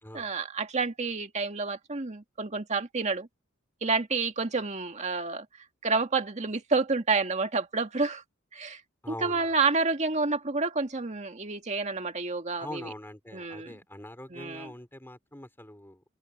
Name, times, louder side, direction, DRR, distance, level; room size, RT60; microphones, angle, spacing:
voice 1, 0.1-3.3 3.8-5.5 5.8-8.2 8.5-8.8 9.1-12.9 13.3-13.8 14.3-14.7, right 4 dB, 35° right, 1.8 m, -29 dB
voice 2, 9.0-9.6 12.6-16.0, left 1 dB, 10° left, 3.9 m, -43 dB
open air
head